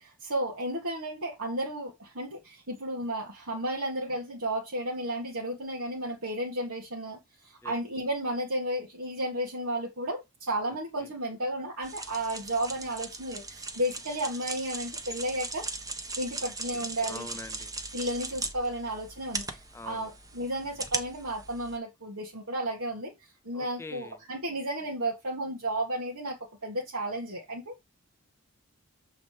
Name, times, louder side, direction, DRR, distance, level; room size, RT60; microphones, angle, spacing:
voice 1, 0.0-15.8 16.2-17.3 17.9-27.7, right 1 dB, 70° right, 1.9 m, -33 dB
sound 1, 11.8-21.8, right 3 dB, 15° right, 0.9 m, -39 dB
voice 2, 16.4-17.7 19.7-20.1 23.5-24.2, left 2 dB, 10° left, 0.6 m, -45 dB
7.3 x 3.9 x 4.9 m
head